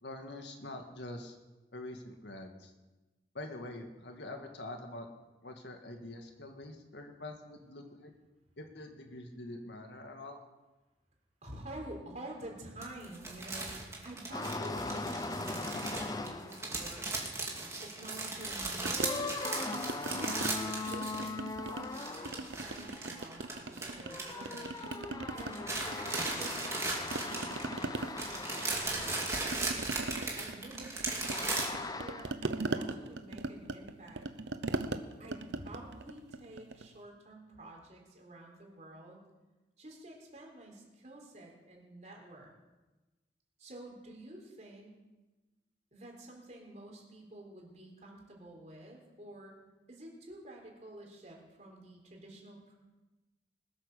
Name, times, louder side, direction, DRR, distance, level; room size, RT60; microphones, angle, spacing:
voice 1, 0.0-1.4 1.7-2.7 3.3-5.1 5.4-8.1 8.6-10.4, left 1 dB, 80° left, 4 dB, 1.9 m, -45 dB
voice 2, 11.4-17.0 17.8-19.3 20.1-24.8 25.3-29.5 30.0-34.2 35.2-39.2 39.8-42.5 43.6-44.9 45.9-49.6 49.9-52.8, right 1 dB, 40° right, 0 dB, 3.9 m, -49 dB
sound 1, 12.8-21.5 21.8-25.1 25.4-31.7, right 3 dB, 15° right, 2.3 m, -38 dB
sound 2, 14.3-16.8 17.6-17.7 19.0-23.6 24.0-29.7 31.3-32.3, left 3 dB, 20° left, 0.6 m, -40 dB
sound 3, 18.9-20.5 20.9-21.9 22.3-24.1 24.4-26.8 27.1-36.9, right 2 dB, 80° right, 0.9 m, -40 dB
20.5 x 8.9 x 6.7 m, 1.1 s
head